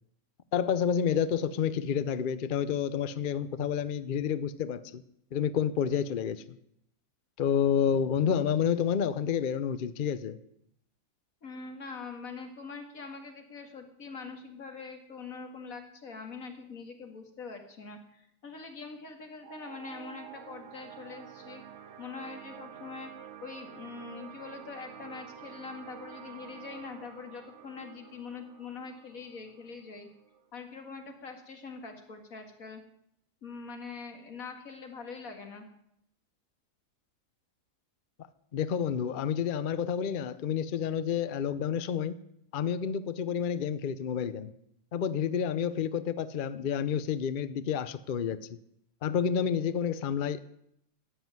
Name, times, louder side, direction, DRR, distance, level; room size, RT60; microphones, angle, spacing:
voice 1, 0.5-5.0 5.3-6.6 7.4-10.4 38.5-42.2 42.5-44.5 44.9-48.6 49.0-50.4, left 8 dB, 70° left, 14 dB, 0.4 m, -29 dB
voice 2, 11.4-21.6 22.0-30.1 30.5-32.8 33.4-35.7, left 4 dB, 55° left, 5 dB, 2.3 m, -43 dB
sound 1, 19.4-30.5, right 8 dB, 50° right, 1.1 m, -49 dB
12.5 x 8.1 x 9.1 m, 0.76 s
omnidirectional pair, 1.8 m